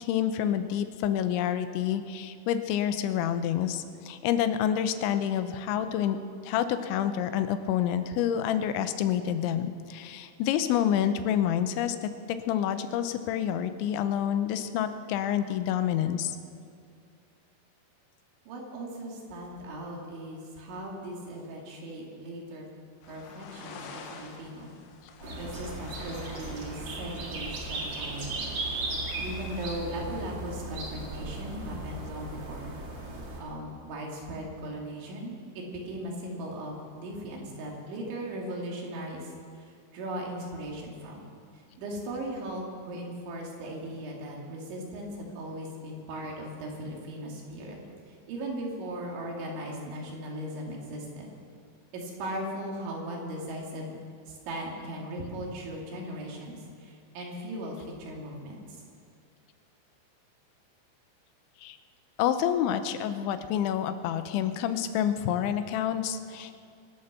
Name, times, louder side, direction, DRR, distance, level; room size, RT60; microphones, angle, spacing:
voice 1, 0.0-6.2 6.4-16.4 61.6-61.8 62.2-66.6, left 10 dB, 85° left, 10 dB, 3.2 m, -28 dB
voice 2, 18.5-22.6 23.1-24.8 25.4-28.4 29.2-32.7 33.4-39.6 39.9-41.3 41.8-47.8 48.1-51.3 51.9-54.0 54.3-58.8, right 1 dB, 85° right, -1 dB, 4.9 m, -38 dB
sound 1, 23.0-29.8, left 5 dB, 70° left, 2.8 m, -48 dB
sound 2, 25.2-33.4, right 2 dB, 45° right, 3.2 m, -36 dB
24.0 x 8.9 x 6.7 m, 2.3 s
omnidirectional pair, 5.2 m